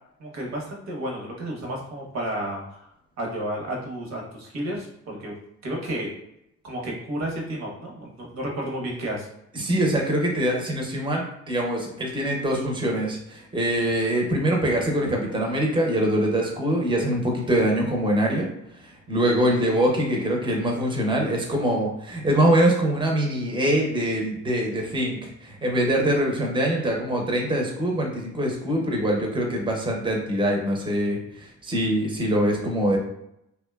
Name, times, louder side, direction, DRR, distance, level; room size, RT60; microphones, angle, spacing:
voice 1, 0.2-2.8 3.2-5.3 5.6-6.1 6.6-9.3 15.0-15.1, right 1 dB, 60° right, -1 dB, 0.9 m, -31 dB
voice 2, 9.5-18.5 18.8-33.0, right 1 dB, 15° right, 0 dB, 0.6 m, -24 dB
2.7 x 2.1 x 2.2 m, 0.80 s
cardioid pair, 90°, 30 cm